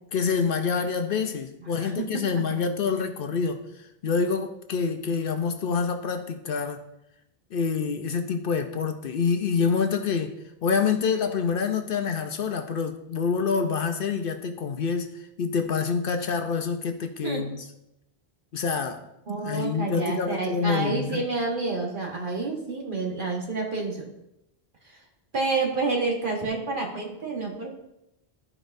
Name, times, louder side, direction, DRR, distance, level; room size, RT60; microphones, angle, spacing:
voice 1, 0.1-3.6 4.0-6.8 7.5-17.7 18.5-19.1 19.4-21.3, left 5 dB, 65° left, 0.8 m, -27 dB
voice 2, 19.3-24.1 25.3-27.7, right 3 dB, 55° right, 1.6 m, -29 dB
13.0 x 4.8 x 2.6 m
omnidirectional pair, 1.1 m